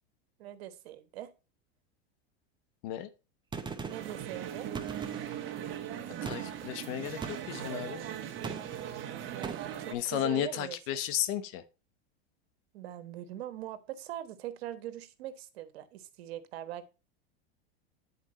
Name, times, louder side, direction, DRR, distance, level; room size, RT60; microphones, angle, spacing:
voice 1, 0.4-1.3 3.9-4.7 9.3-10.8 12.7-16.9, right 12 dB, 75° right, 1.2 m, -42 dB
Gunshot gunfire, 3.5-4.2 4.7-5.5 6.2-6.7 7.2-7.7 8.4-8.9 9.4-9.8, right 5 dB, 15° right, 0.8 m, -40 dB
sound 1, 3.9-10.0, right 10 dB, 40° right, 1.3 m, -39 dB
voice 2, 6.2-8.0 9.9-11.6, left 11 dB, 65° left, 1.2 m, -33 dB
9.5 x 4.5 x 4.2 m
supercardioid pair, 120°, 31 cm